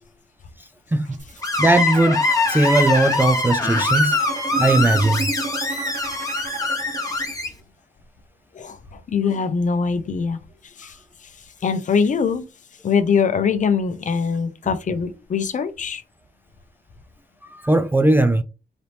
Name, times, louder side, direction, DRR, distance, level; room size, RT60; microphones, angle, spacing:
sound 1, 1.1-7.3, right 4 dB, 45° right, 0.7 m, -33 dB
Screech, 1.4-7.5, left 2 dB, 20° left, 1.0 m, -23 dB
voice 1, 1.6-4.2 4.5-5.3 17.5-18.4, right 2 dB, 10° right, 0.3 m, -18 dB
voice 2, 8.5-10.4 10.8-11.0 11.6-12.4 12.8-16.0, left 6 dB, 45° left, 0.6 m, -22 dB
4.0 x 2.8 x 3.3 m
wide cardioid pair, 140°, 17 cm